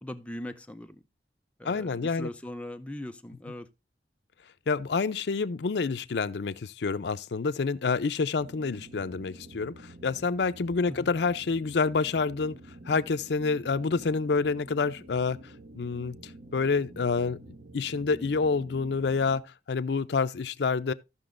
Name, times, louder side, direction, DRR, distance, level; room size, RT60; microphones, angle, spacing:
voice 1, 0.0-1.0 1.6-3.7 10.9-11.1, left 1 dB, 5° left, 0.5 m, -40 dB
voice 2, 1.6-2.3 4.7-12.6 12.9-15.4 15.7-16.2 16.5-17.4 17.7-20.9, left 4 dB, 75° left, 0.5 m, -28 dB
sound 1, 8.4-19.4, right 1 dB, 55° right, 0.7 m, -49 dB
15.5 x 5.9 x 2.5 m
head